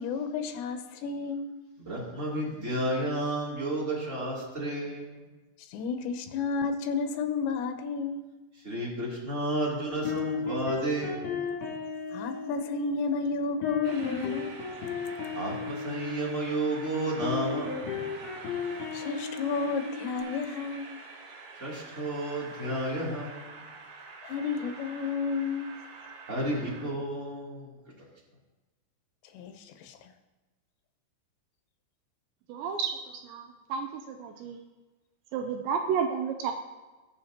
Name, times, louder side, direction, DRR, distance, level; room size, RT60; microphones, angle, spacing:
voice 1, 0.0-1.5 5.7-8.3 12.1-14.6 18.9-21.0 24.2-25.8 29.3-30.1, left 5 dB, 75° left, 7 dB, 3.0 m, -32 dB
voice 2, 1.8-5.3 8.5-11.4 15.3-18.0 21.5-23.6 26.3-28.0, right 1 dB, 20° right, -5 dB, 2.2 m, -32 dB
sound 1, 9.9-20.2, left 5 dB, 60° left, 4.2 m, -35 dB
Train, 13.8-26.9, right 4 dB, 60° right, 2.2 m, -46 dB
voice 3, 32.5-32.9 33.2-34.6 35.3-36.5, right 6 dB, 80° right, 4 dB, 2.7 m, -31 dB
21.0 x 7.3 x 2.9 m, 1.2 s
omnidirectional pair, 5.5 m